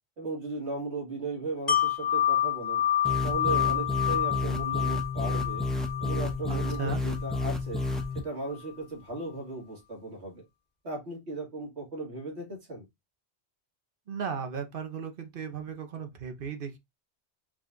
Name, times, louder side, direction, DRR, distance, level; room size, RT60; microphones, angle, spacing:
voice 1, 0.2-2.8 3.2-5.6 6.0-7.8 8.1-10.4 10.8-12.8, right 2 dB, 75° right, 2.0 m, -37 dB
Wind chime, 1.7-7.5 7.9-8.0, left 11 dB, 40° left, 1.1 m, -29 dB
sound 1, 3.0-8.2, left 2 dB, ahead, 0.5 m, -31 dB
voice 2, 6.5-7.0 14.1-16.8, right 6 dB, 55° right, 0.9 m, -36 dB
4.9 x 2.3 x 3.8 m
omnidirectional pair, 1.2 m